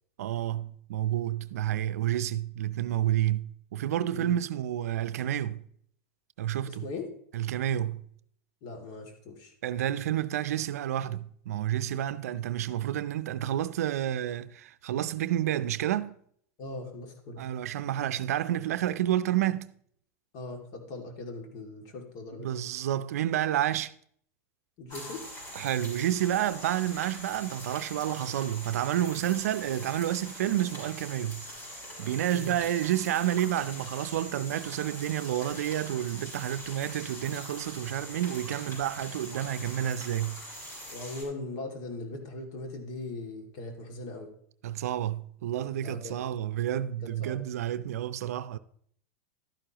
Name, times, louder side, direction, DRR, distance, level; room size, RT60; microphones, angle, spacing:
voice 1, 0.2-5.6 6.4-6.9 7.3-8.1 9.6-16.2 17.4-19.7 22.4-23.9 25.5-31.5 32.0-40.4 44.6-48.6, right 12 dB, 80° right, 0.5 m, -30 dB
voice 2, 6.7-7.1 8.6-9.5 16.6-17.4 20.3-22.5 24.8-25.2 32.3-32.5 40.9-44.3 45.8-46.2 47.2-47.4, left 2 dB, 55° left, 2.3 m, -39 dB
sound 1, 24.9-41.2, equal, 35° left, 5.1 m, -43 dB
12.0 x 9.9 x 2.9 m
hypercardioid pair, 105°, 8 cm